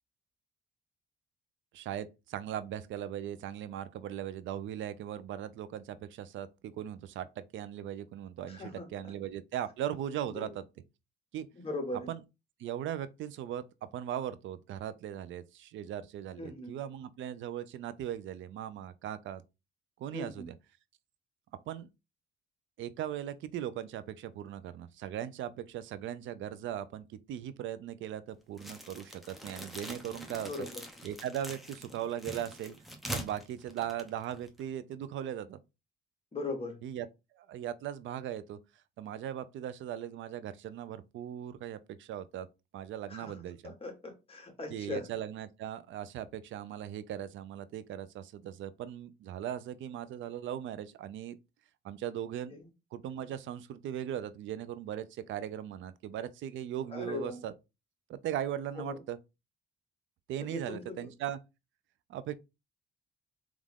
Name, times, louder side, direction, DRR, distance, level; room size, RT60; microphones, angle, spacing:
voice 1, 1.7-10.6 11.3-11.5 12.1-12.2 12.6-13.6 13.9-19.4 20.0-20.5 21.7-21.9 22.8-30.5 31.0-32.7 33.1-35.6 36.8-37.1 37.4-38.6 39.0-42.5 42.7-43.7 44.7-51.4 51.8-52.5 52.9-57.5 58.1-59.2 60.3-61.4 62.1-62.4, right 10 dB, 75° right, 0.5 m, -39 dB
voice 2, 8.5-9.1 10.2-10.5 11.6-12.1 16.4-16.7 20.1-20.5 30.4-30.8 36.3-36.8 43.1-45.1 52.5-52.7 56.9-57.4 58.7-59.0 60.4-61.1, left 2 dB, 30° left, 1.6 m, -40 dB
sound 1, 28.6-34.7, equal, ahead, 1.0 m, -44 dB
3.7 x 3.1 x 3.5 m
cardioid pair, 90°, 20 cm